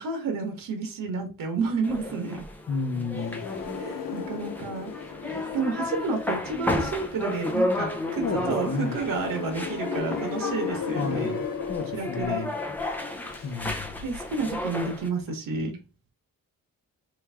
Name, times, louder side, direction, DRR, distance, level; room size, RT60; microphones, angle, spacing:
voice 1, 0.0-2.4 3.8-4.9 5.5-11.3 11.9-12.5 14.0-15.8, right 4 dB, 75° right, 1.4 m, -30 dB
sound 1, 1.8-15.1, left 1 dB, 5° left, 0.4 m, -33 dB
voice 2, 2.7-3.4 8.2-9.0 10.9-12.5 13.4-13.9, left 4 dB, 40° left, 0.7 m, -32 dB
sound 2, 3.1-14.8, left 7 dB, 70° left, 0.9 m, -36 dB
3.4 x 3.1 x 3.4 m
wide cardioid pair, 170°, 34 cm